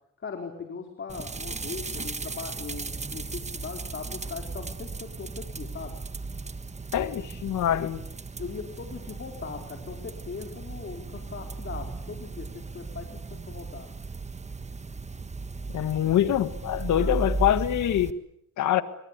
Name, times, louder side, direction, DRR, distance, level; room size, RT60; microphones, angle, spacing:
voice 1, 0.2-6.0 8.4-13.9 16.9-17.3, left 5 dB, 40° left, 4.3 m, -39 dB
sound 1, 1.1-18.1, right 3 dB, 20° right, 1.5 m, -36 dB
voice 2, 6.9-8.0 15.7-18.2 18.6-18.8, left 11 dB, 75° left, 1.9 m, -24 dB
25.5 x 25.0 x 8.4 m
cardioid pair, 90°, 30 cm